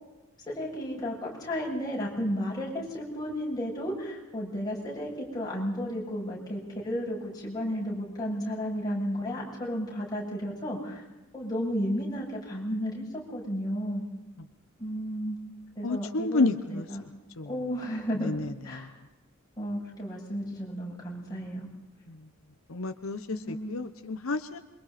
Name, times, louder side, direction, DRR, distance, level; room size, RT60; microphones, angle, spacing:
voice 1, 0.5-11.0 11.3-14.0 14.8-15.4 15.8-17.0 17.5-18.3 18.6-18.9 19.6-21.7 23.3-23.8, equal, 20° left, -4 dB, 7.5 m, -33 dB
voice 2, 15.8-16.9 17.4-17.7 18.2-19.0 22.1-22.3 22.7-24.6, left 3 dB, 85° left, 9 dB, 1.1 m, -31 dB
27.5 x 24.5 x 4.3 m, 1.1 s
head